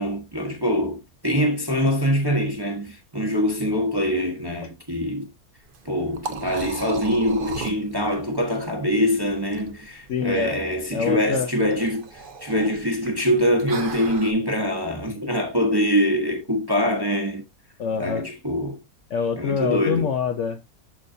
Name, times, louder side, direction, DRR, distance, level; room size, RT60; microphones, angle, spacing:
voice 1, 0.0-5.3 5.8-17.4 18.0-18.8 19.4-20.1, equal, 20° right, 1.1 m, -24 dB
Liquid, 5.6-14.3, right 5 dB, 45° right, 0.9 m, -37 dB
voice 2, 10.1-10.6 10.9-11.5 17.8-18.2 19.1-20.7, left 7 dB, 60° left, 0.9 m, -25 dB
12.0 x 4.1 x 2.7 m
omnidirectional pair, 1.5 m